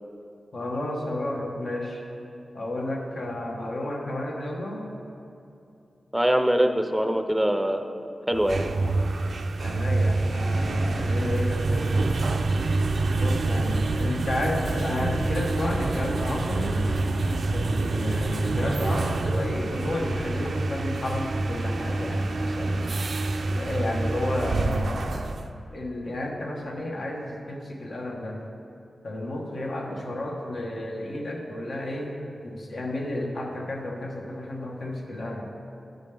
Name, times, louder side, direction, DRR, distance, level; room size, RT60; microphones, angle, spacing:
voice 1, 0.5-2.0 2.5-4.9 9.6-11.9 13.1-16.8 17.5-23.0 23.5-25.3 25.7-28.5 29.0-32.2 32.4-35.5, left 1 dB, 70° left, 0 dB, 1.1 m, -31 dB
voice 2, 6.1-7.8 8.3-8.7, equal, 5° right, 6 dB, 0.5 m, -23 dB
sound 1, 8.3-25.5, right 2 dB, 70° right, 0.4 m, -26 dB
12.0 x 5.1 x 3.3 m, 2.7 s
wide cardioid pair, 80°, 0 cm